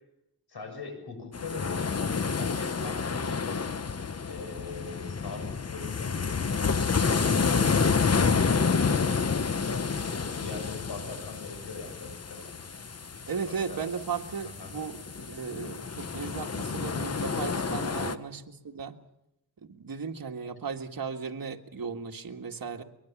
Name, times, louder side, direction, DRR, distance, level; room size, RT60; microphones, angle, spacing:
voice 1, 0.5-1.9 2.3-3.6 4.3-9.1 9.5-12.6 13.5-13.8 14.4-14.7 17.9-18.1, left 3 dB, 80° left, 5 dB, 7.1 m, -42 dB
sound 1, 1.3-18.2, left 5 dB, 40° left, 1.0 m, -29 dB
voice 2, 13.3-19.0 19.7-22.8, right 6 dB, 60° right, 3 dB, 1.9 m, -36 dB
23.0 x 22.0 x 7.3 m, 0.83 s
wide cardioid pair, 95°, 39 cm